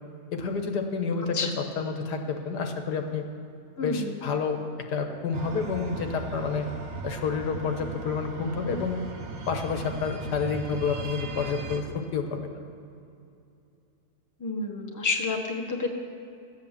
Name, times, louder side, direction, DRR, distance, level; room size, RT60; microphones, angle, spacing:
voice 1, 0.3-1.4 1.8-3.3 3.8-6.7 7.0-9.0 9.5-12.6, left 5 dB, 75° left, 4 dB, 1.7 m, -29 dB
voice 2, 3.8-4.1 14.4-15.9, left 3 dB, 15° left, 2 dB, 0.9 m, -29 dB
sound 1, 5.3-11.8, right 3 dB, 70° right, 1.7 m, -37 dB
14.0 x 8.0 x 7.2 m, 2.6 s
omnidirectional pair, 1.8 m